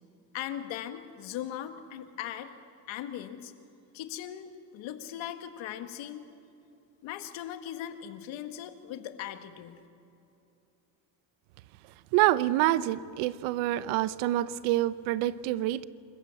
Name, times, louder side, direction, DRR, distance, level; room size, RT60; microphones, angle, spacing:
voice 1, 0.3-2.5 2.9-3.5 3.9-6.3 7.0-9.8, left 11 dB, 70° left, 9 dB, 1.7 m, -39 dB
voice 2, 12.1-15.8, right 15 dB, 90° right, 17 dB, 0.8 m, -27 dB
26.0 x 14.5 x 8.3 m, 2.7 s
cardioid pair, 110°, 47 cm